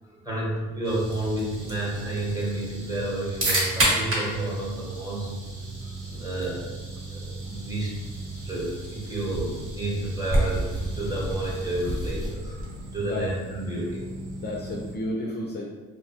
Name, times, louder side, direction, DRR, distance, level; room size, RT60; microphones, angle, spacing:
voice 1, 0.0-5.3 6.2-6.7 7.1-8.0 8.4-14.1, right 2 dB, 10° right, -5 dB, 0.9 m, -31 dB
sound 1, 0.8-14.9, right 2 dB, 85° right, 0.7 m, -38 dB
sound 2, 1.0-12.9, right 1 dB, 45° right, 1.0 m, -31 dB
voice 2, 14.4-15.7, left 1 dB, 35° left, -3 dB, 0.4 m, -32 dB
2.7 x 2.2 x 2.7 m, 1.3 s
cardioid pair, 90°, 30 cm